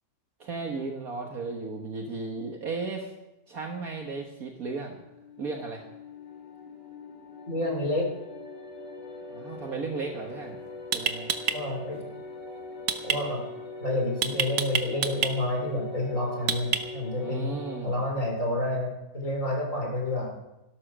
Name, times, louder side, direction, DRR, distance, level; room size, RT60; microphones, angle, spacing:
voice 1, 0.4-3.1 3.5-5.0 5.4-5.8 9.3-10.6 10.9-11.3 17.1-18.0, right 4 dB, 55° right, 1 dB, 1.9 m, -35 dB
sound 1, 4.8-17.8, left 3 dB, 85° left, 3.0 m, -42 dB
voice 2, 7.5-8.1 11.5-12.0 13.0-13.4 13.8-17.5 17.8-20.3, left 1 dB, 45° left, 0 dB, 4.8 m, -29 dB
sound 2, 10.3-10.4 10.9-11.6 12.9-13.2 14.2-15.3 16.5-17.1, right 7 dB, 75° right, 1.7 m, -26 dB
15.0 x 12.5 x 6.2 m, 0.93 s
omnidirectional pair, 1.8 m